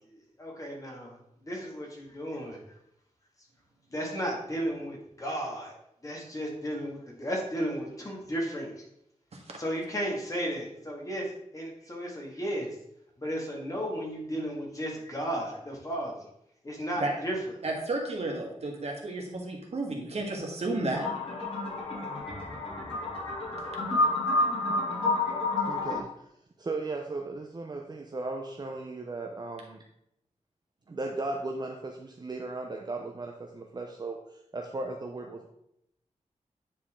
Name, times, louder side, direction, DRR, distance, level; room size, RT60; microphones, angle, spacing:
voice 1, 0.1-1.2 1.4-2.6 3.9-5.7 6.0-8.8 9.6-12.7 13.2-16.3 16.6-17.4, equal, 25° left, -2 dB, 2.0 m, -34 dB
voice 2, 17.6-21.1, right 2 dB, 60° right, 0 dB, 1.7 m, -32 dB
sound 1, 20.9-26.0, left 2 dB, 45° left, 3.0 m, -29 dB
voice 3, 25.7-26.3 26.6-29.8 30.9-35.5, right 2 dB, 35° right, 2 dB, 0.7 m, -36 dB
9.4 x 4.4 x 3.7 m, 0.76 s
wide cardioid pair, 115°, 12 cm